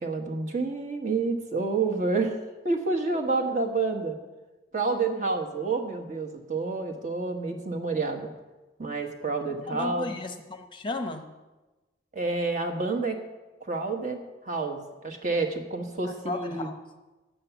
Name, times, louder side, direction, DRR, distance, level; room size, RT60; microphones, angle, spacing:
voice 1, 0.0-2.4 2.6-4.2 4.7-8.3 8.8-10.2 12.1-13.2 13.6-16.7, right 3 dB, 40° right, 4 dB, 1.3 m, -29 dB
voice 2, 9.7-11.2 16.0-16.8, left 2 dB, 25° left, 6 dB, 0.8 m, -34 dB
10.0 x 8.7 x 7.0 m, 1.1 s
head